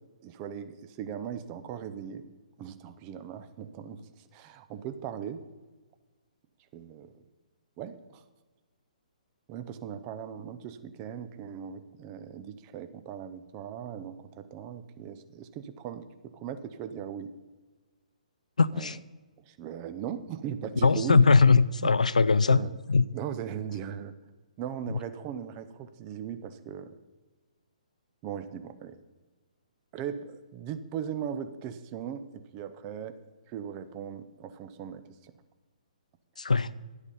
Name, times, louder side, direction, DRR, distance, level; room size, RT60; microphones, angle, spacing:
voice 1, 0.2-2.2 2.6-4.0 4.3-5.4 6.7-7.2 7.8-8.2 9.5-17.3 18.7-19.0 19.5-21.2 21.8-21.9 22.5-22.8 23.1-24.1 24.6-26.9 28.2-29.0 29.9-33.2 33.5-35.3, right 8 dB, 25° right, 0.6 m, -38 dB
voice 2, 18.6-19.0 20.8-23.0 24.9-25.0 36.4-36.7, left 4 dB, 70° left, 0.4 m, -21 dB
10.5 x 8.1 x 5.5 m
figure-of-eight pair, 125°, 4 cm